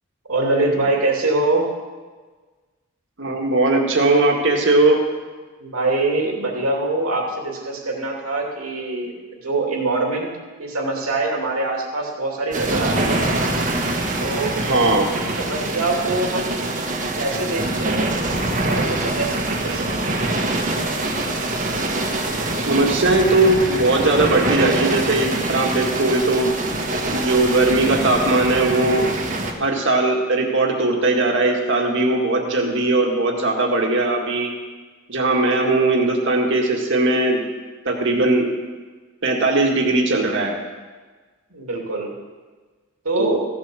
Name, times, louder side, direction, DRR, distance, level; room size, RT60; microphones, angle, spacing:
voice 1, 0.3-1.7 5.6-10.3 10.6-13.2 14.2-14.6 15.2-16.6 17.2-18.2 18.6-20.1 41.5-42.1 43.0-43.4, right 2 dB, 85° right, 0 dB, 2.7 m, -24 dB
voice 2, 3.2-5.0 14.6-15.1 22.6-26.5 27.1-29.1 29.6-34.5 35.1-37.4 37.8-38.5 39.2-40.5 43.2-43.4, right 2 dB, 60° right, 1 dB, 2.0 m, -19 dB
sound 1, 12.5-29.5, right 2 dB, 35° right, 1.5 m, -24 dB
15.5 x 7.8 x 6.3 m, 1.4 s
head